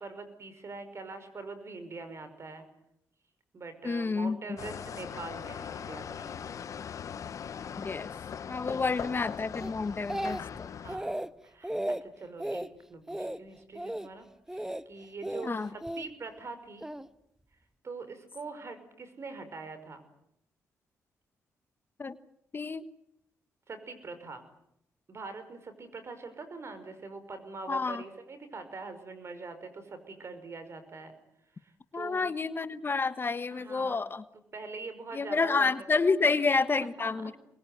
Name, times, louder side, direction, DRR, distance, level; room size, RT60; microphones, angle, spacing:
voice 1, 0.0-2.7 3.5-6.5 10.7-16.9 17.8-20.0 23.7-24.5 25.1-31.1 31.6-32.3 33.5-34.0 34.5-35.7 36.1-37.1, right 3 dB, 45° right, 10 dB, 5.7 m, -44 dB
voice 2, 3.8-4.4 7.8-8.1 8.5-10.7 15.4-15.7 22.0-22.2 22.5-22.8 27.7-28.0 31.9-34.2 35.1-37.4, left 4 dB, 35° left, 12 dB, 1.3 m, -29 dB
sound 1, 4.6-11.0, left 7 dB, 60° left, 1.0 m, -40 dB
Speech, 9.6-10.6 10.9-11.3 11.6-12.0 12.4-12.7 13.1-13.4 13.7-14.1 14.5-14.8 15.2-16.1 16.8-17.1, right 1 dB, 10° right, 1.2 m, -35 dB
25.0 x 21.0 x 9.5 m, 0.78 s
cardioid pair, 70°, 6 cm